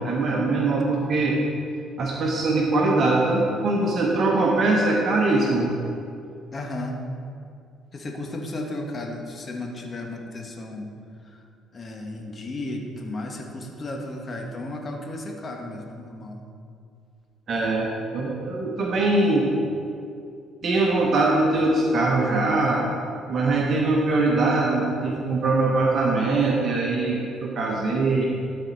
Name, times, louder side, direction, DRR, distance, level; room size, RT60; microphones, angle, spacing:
voice 1, 0.0-1.4 2.0-5.7 17.5-19.5 20.6-22.8 23.3-28.3, right 2 dB, 50° right, -2 dB, 1.1 m, -22 dB
voice 2, 6.5-7.0 7.9-10.9 11.3-11.4 11.7-16.5, left 2 dB, 40° left, 1 dB, 1.3 m, -34 dB
12.5 x 4.4 x 4.1 m, 2.4 s
supercardioid pair, 75°, 0 cm